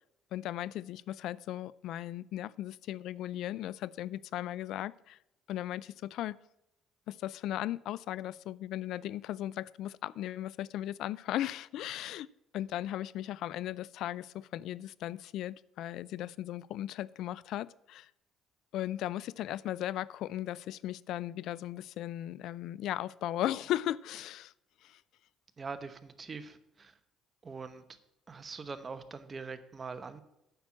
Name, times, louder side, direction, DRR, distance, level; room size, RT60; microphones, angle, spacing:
voice 1, 0.3-5.2 5.5-6.4 7.1-12.3 12.5-18.1 18.7-24.5 24.8-25.0, left 13 dB, 70° left, 21 dB, 0.3 m, -37 dB
voice 2, 25.6-27.0 27.4-27.8 28.3-30.2, right 4 dB, 30° right, 11 dB, 0.9 m, -43 dB
9.1 x 5.9 x 7.4 m, 0.85 s
cardioid pair, 105°, 0 cm